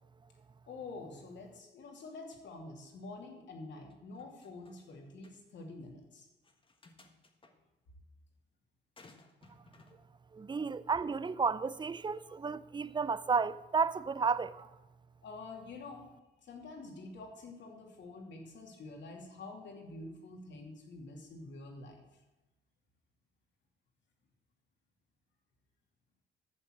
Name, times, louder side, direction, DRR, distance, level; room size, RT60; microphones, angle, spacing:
voice 1, 0.7-6.3 15.2-16.1 16.4-22.0, left 3 dB, 65° left, 2.8 m, -47 dB
sound 1, 3.9-4.9 5.2-5.4 6.4-7.5 9.0-10.0, left 3 dB, 25° left, 1.5 m, -60 dB
voice 2, 10.3-14.7, right 5 dB, 25° right, 0.5 m, -32 dB
11.0 x 7.0 x 8.0 m
cardioid pair, 90°, 20 cm